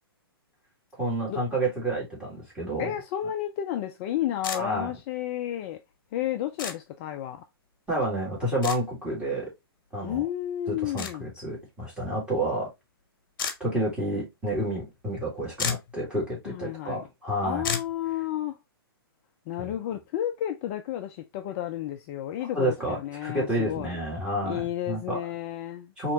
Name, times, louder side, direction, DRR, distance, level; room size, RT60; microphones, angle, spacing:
voice 1, 1.0-2.9 4.5-4.9 7.9-9.5 9.9-10.2 10.7-12.7 13.6-17.7 19.6-19.7 22.5-25.2 26.0-26.1, right 1 dB, 10° right, 2.2 m, -29 dB
voice 2, 2.8-5.8 6.1-7.4 10.0-11.2 16.5-17.0 17.4-18.6 19.5-24.0 24.4-25.9, left 12 dB, 35° left, 0.4 m, -32 dB
sound 1, 4.4-4.6 6.6-6.8 8.6-8.8 11.0-11.1 13.4-13.6 15.2-15.3 15.5-15.9 17.6-17.9, left 6 dB, 55° left, 0.8 m, -30 dB
4.3 x 2.9 x 2.5 m
hypercardioid pair, 125°, 13 cm